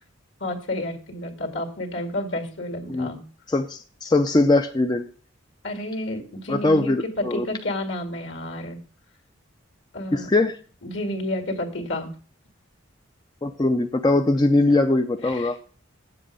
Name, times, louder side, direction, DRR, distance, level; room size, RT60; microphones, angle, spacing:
voice 1, 0.4-3.2 5.6-8.8 9.9-10.3 10.8-12.1 15.2-15.6, left 1 dB, 65° left, 5 dB, 2.1 m, -30 dB
voice 2, 3.5-5.1 6.5-7.5 10.1-10.6 13.4-15.6, left 2 dB, 20° left, 6 dB, 0.4 m, -21 dB
7.9 x 7.5 x 6.4 m, 0.42 s
head